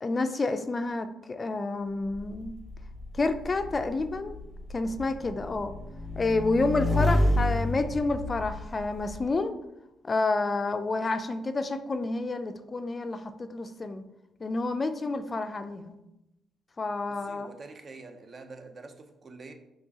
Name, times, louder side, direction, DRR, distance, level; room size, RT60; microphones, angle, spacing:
voice 1, 0.0-2.5 3.1-4.3 4.7-5.7 6.2-9.6 10.0-14.0 14.4-16.0 16.8-17.5, left 3 dB, 30° left, 0.3 m, -29 dB
Motorcycle / Engine, 2.1-9.2, left 1 dB, 5° right, 0.8 m, -30 dB
voice 2, 17.1-19.5, right 3 dB, 40° right, 0.5 m, -46 dB
4.5 x 3.0 x 2.8 m
cardioid pair, 90°, 0 cm